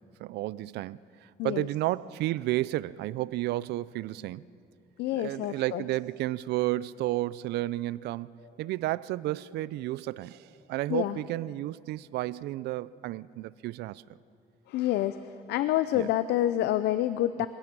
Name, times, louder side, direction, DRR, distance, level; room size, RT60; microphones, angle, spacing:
voice 1, 0.2-4.5 5.1-8.3 8.6-14.0 15.9-16.1 17.4-17.5, right 16 dB, 75° right, 0.5 m, -32 dB
voice 2, 5.0-5.8 10.9-11.2 14.7-17.5, left 13 dB, 80° left, 0.6 m, -28 dB
26.5 x 17.0 x 6.1 m
cardioid pair, 110°, 17 cm